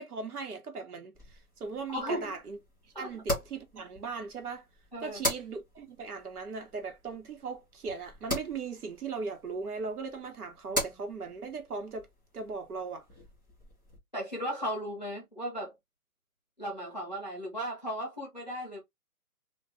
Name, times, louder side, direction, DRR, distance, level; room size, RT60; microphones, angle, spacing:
voice 1, 0.0-2.6 3.0-4.6 5.0-12.1 12.3-13.0, right 4 dB, 80° right, 1.2 m, -38 dB
sound 1, 1.1-14.0, equal, 15° right, 0.9 m, -40 dB
voice 2, 1.9-2.4 2.9-3.1 4.9-5.2 10.7-10.8 14.1-15.7 16.6-18.8, equal, 30° left, 0.5 m, -36 dB
2.5 x 2.2 x 3.6 m
hypercardioid pair, 180°, 44 cm